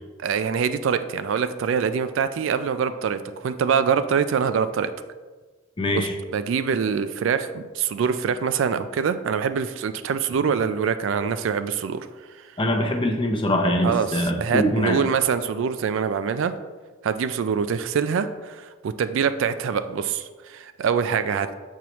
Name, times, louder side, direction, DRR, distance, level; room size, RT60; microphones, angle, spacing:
voice 1, 0.2-4.9 5.9-12.4 13.8-16.5 17.0-21.5, right 6 dB, 70° right, 11 dB, 0.3 m, -24 dB
voice 2, 5.8-6.1 12.6-15.0, left 1 dB, 25° left, 3 dB, 0.6 m, -23 dB
7.0 x 4.6 x 3.0 m, 1.3 s
head